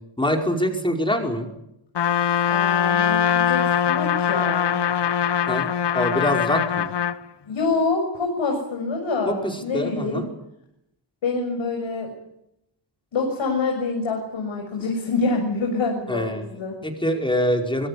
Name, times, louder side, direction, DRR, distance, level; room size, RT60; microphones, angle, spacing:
voice 1, 0.2-1.5 5.5-5.7 5.9-6.9 9.3-10.3 16.1-16.4 16.8-17.9, equal, 10° left, 3 dB, 5.1 m, -24 dB
Trumpet, 1.9-7.2, left 9 dB, 60° left, 1.2 m, -22 dB
voice 2, 2.5-4.8 7.5-10.2 11.2-12.1 13.1-16.8, left 3 dB, 85° left, 2 dB, 6.8 m, -26 dB
25.0 x 22.5 x 8.6 m, 0.82 s
wide cardioid pair, 130°, 46 cm